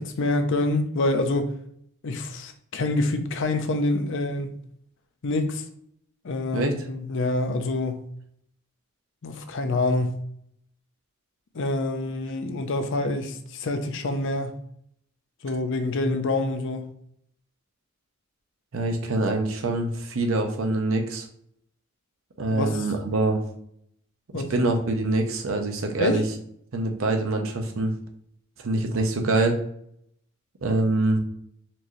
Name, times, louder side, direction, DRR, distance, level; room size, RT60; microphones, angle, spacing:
voice 1, 0.0-1.6 2.0-4.5 5.2-5.6 6.2-8.1 9.2-10.3 11.5-14.6 15.4-16.9 22.5-22.8 24.3-24.5 26.0-26.2, left 2 dB, 60° left, 0.5 m, -26 dB
voice 2, 6.5-6.9 18.7-21.3 22.4-23.4 24.3-26.2 26.7-27.9 28.6-29.6 30.6-31.2, right 2 dB, 65° right, 0.7 m, -25 dB
4.4 x 2.7 x 3.0 m
head